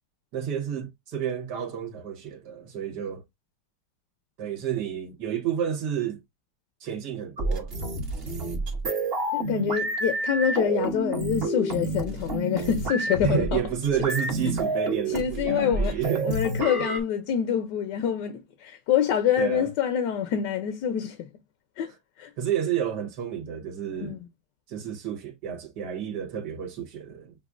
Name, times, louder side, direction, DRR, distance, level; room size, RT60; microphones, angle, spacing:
voice 1, 0.3-3.2 4.4-6.2 6.8-7.7 13.2-16.4 19.4-19.7 22.4-24.2 24.7-27.3, right 8 dB, 70° right, 1.7 m, -30 dB
sound 1, 7.4-17.0, right 2 dB, 40° right, 1.1 m, -29 dB
voice 2, 9.3-13.6 15.1-21.3 21.8-21.9 22.2-22.3 24.0-24.2, left 9 dB, 75° left, 1.3 m, -26 dB
7.0 x 2.5 x 2.4 m
omnidirectional pair, 1.9 m